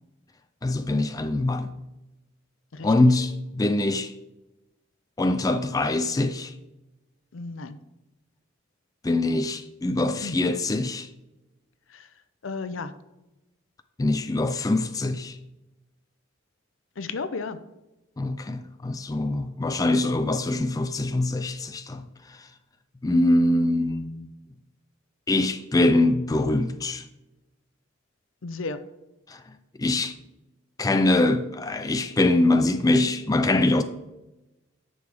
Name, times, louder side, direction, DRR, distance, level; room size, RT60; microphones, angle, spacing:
voice 1, 0.6-1.7 2.8-4.1 5.2-6.5 9.0-11.1 14.0-15.4 18.2-22.5 23.0-24.3 25.3-27.1 29.3-29.4 29.8-30.1 30.8-33.8, left 2 dB, 20° left, 0.3 m, -23 dB
voice 2, 7.3-7.8 10.0-10.4 11.9-12.1 12.4-12.9 17.0-17.6 28.4-28.8, left 4 dB, 70° left, 0.6 m, -33 dB
9.8 x 6.8 x 3.4 m
head